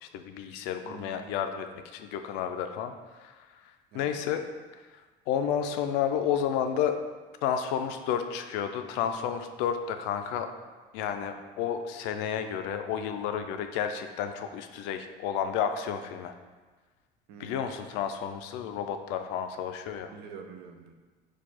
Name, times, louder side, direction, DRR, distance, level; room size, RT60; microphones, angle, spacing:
voice 1, 0.0-4.4 4.8-7.0 7.4-10.5 10.9-16.3 17.4-20.1, left 8 dB, 80° left, 7 dB, 0.4 m, -31 dB
voice 2, 0.8-1.3 3.9-4.2 17.3-17.7 20.1-20.9, right 5 dB, 70° right, 5 dB, 0.5 m, -46 dB
4.5 x 2.3 x 4.2 m, 1.3 s
cardioid pair, 125°, 18 cm